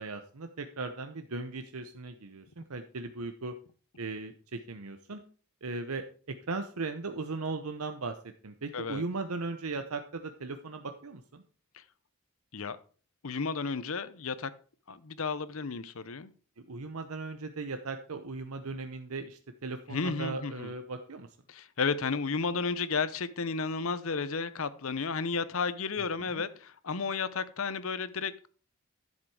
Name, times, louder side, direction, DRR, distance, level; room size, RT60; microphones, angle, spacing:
voice 1, 0.0-3.6 4.0-5.2 5.6-8.2 8.4-11.4 16.7-21.3 26.2-26.4, right 3 dB, 90° right, 7 dB, 0.9 m, -38 dB
voice 2, 13.2-14.5 14.9-16.3 19.9-20.7 21.5-28.5, left 4 dB, 75° left, 15 dB, 0.8 m, -33 dB
11.0 x 7.4 x 4.8 m, 0.41 s
head